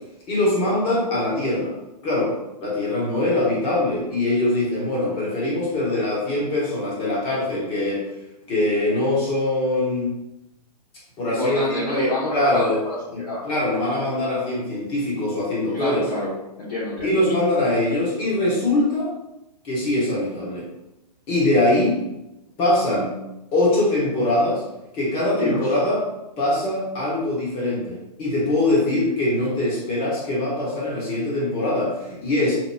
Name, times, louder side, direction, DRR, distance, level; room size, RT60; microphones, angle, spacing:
voice 1, 0.3-1.7 2.0-2.3 2.6-8.0 8.5-10.1 11.2-12.8 13.1-16.0 17.0-19.1 19.6-20.6 21.3-22.0 22.6-23.1 23.5-24.6 24.9-26.0 26.4-32.6, left 1 dB, 25° left, -6 dB, 1.2 m, -22 dB
voice 2, 11.2-13.6 15.7-17.3 25.4-25.7, left 2 dB, 65° left, -9 dB, 1.0 m, -28 dB
3.0 x 2.2 x 2.3 m, 0.92 s
hypercardioid pair, 130°, 21 cm